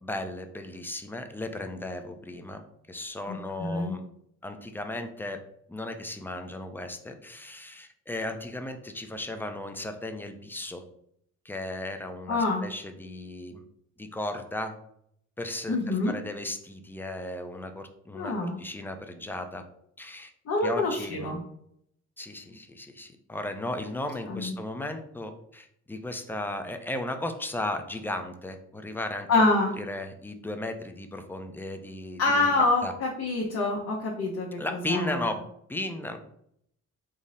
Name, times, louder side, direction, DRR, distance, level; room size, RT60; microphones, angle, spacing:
voice 1, 0.0-2.6 2.9-4.0 4.4-5.4 5.7-10.8 11.4-13.6 14.0-14.8 15.4-19.6 20.0-20.3 20.6-21.4 22.2-29.3 29.8-32.9 34.6-36.2, left 1 dB, 5° left, 6 dB, 0.4 m, -35 dB
voice 2, 3.3-4.0 12.3-12.6 15.7-16.1 18.1-18.6 20.5-21.4 24.3-24.5 29.3-29.7 32.2-34.5 34.9-35.3, left 2 dB, 55° left, -3 dB, 0.9 m, -26 dB
3.7 x 2.0 x 4.0 m, 0.72 s
cardioid pair, 90°, 30 cm